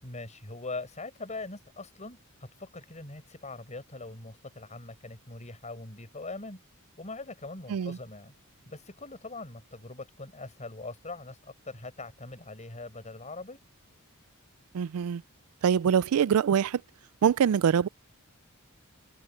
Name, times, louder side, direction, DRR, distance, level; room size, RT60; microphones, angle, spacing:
voice 1, 0.0-6.6 7.0-8.3 8.7-13.6, left 3 dB, 35° left, 5.3 m, -42 dB
voice 2, 14.7-15.2 15.6-16.8 17.2-17.9, right 8 dB, 80° right, 0.4 m, -24 dB
head